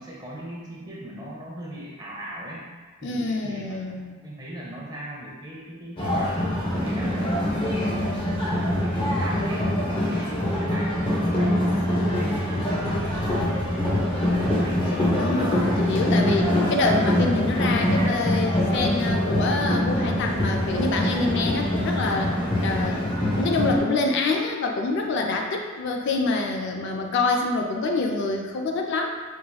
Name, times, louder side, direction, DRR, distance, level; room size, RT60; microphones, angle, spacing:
voice 1, 0.0-2.6 3.0-7.3 7.8-15.0, equal, 20° right, -5 dB, 0.8 m, -38 dB
voice 2, 3.0-4.2 7.7-8.4 15.1-22.4 22.6-29.2, left 3 dB, 60° left, 2 dB, 0.3 m, -26 dB
sound 1, 6.0-23.8, left 1 dB, 25° left, 0.7 m, -24 dB
4.6 x 2.8 x 2.3 m, 1.4 s
head